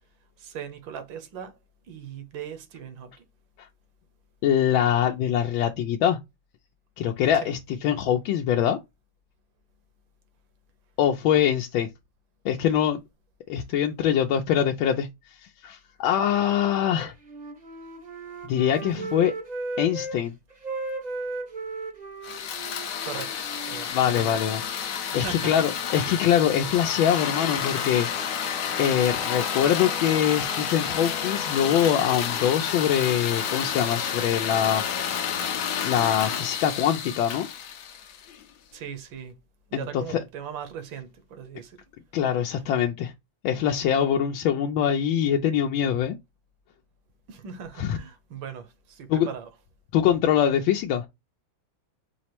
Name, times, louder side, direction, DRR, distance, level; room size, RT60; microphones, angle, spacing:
voice 1, 0.4-1.6 1.9-3.1 7.3-7.5 18.3-18.4 18.8-19.1 23.0-23.3 23.6-24.4 25.1-25.5 38.7-39.4 39.7-41.8 47.3-49.5, right 7 dB, 75° right, 1.6 m, -39 dB
voice 2, 4.4-6.2 7.0-8.8 11.0-11.9 12.4-13.0 13.5-15.1 15.4-17.1 18.5-19.3 19.8-20.3 23.9-24.6 25.1-28.1 28.8-34.8 35.8-37.5 39.7-40.2 42.1-43.1 43.4-46.2 47.8-48.0 49.1-49.3 49.9-51.1, left 9 dB, 85° left, 1.4 m, -23 dB
Wind instrument woodwind instrument, 16.8-20.2 20.5-24.4, right 3 dB, 35° right, 0.7 m, -36 dB
sound 1, 22.2-38.4, left 8 dB, 65° left, 1.1 m, -30 dB
4.8 x 2.0 x 4.2 m
omnidirectional pair, 2.1 m